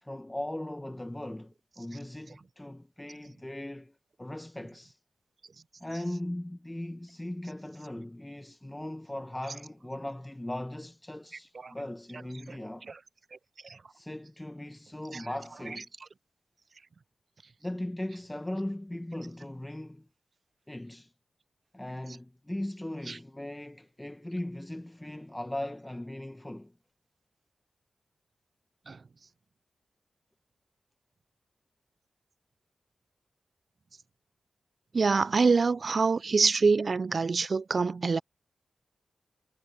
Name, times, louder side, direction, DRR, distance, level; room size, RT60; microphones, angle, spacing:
voice 1, 0.0-5.0 5.8-12.9 13.9-15.9 17.6-20.1 20.7-21.1 21.7-26.7, left 1 dB, 15° left, 1.2 m, -38 dB
voice 2, 34.9-38.2, right 4 dB, 60° right, 0.3 m, -25 dB
cardioid pair, 40°, 0 cm